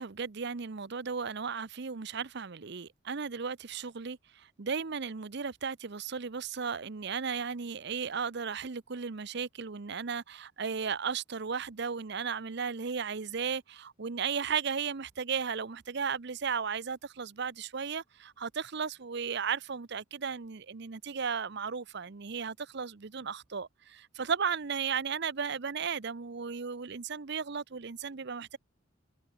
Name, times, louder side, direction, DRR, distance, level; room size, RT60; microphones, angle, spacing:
voice 1, 0.0-28.6, right 6 dB, 55° right, 0.7 m, -35 dB
head